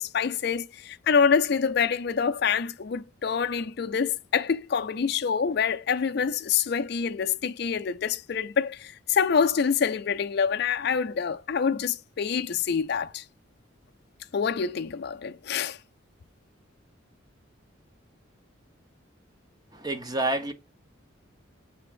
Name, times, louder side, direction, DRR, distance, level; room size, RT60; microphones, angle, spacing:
voice 1, 0.0-13.2 14.3-15.8, left 6 dB, 55° left, 0.4 m, -26 dB
voice 2, 19.8-20.5, right 2 dB, 20° right, 0.7 m, -28 dB
6.8 x 3.5 x 4.9 m
head